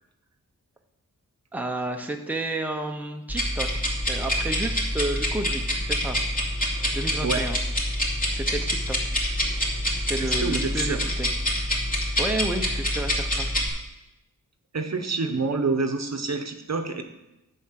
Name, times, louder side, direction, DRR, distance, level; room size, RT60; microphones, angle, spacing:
voice 1, 1.5-6.2 6.9-7.6 8.3-9.2 10.1-11.3 11.9-13.5, right 2 dB, 5° right, 3 dB, 0.9 m, -31 dB
sound 1, 3.3-13.7, equal, 25° left, 2.6 m, -26 dB
voice 2, 10.2-11.0 14.7-17.0, right 4 dB, 50° right, 6 dB, 1.0 m, -27 dB
8.2 x 7.4 x 5.9 m, 0.94 s
wide cardioid pair, 85°, 34 cm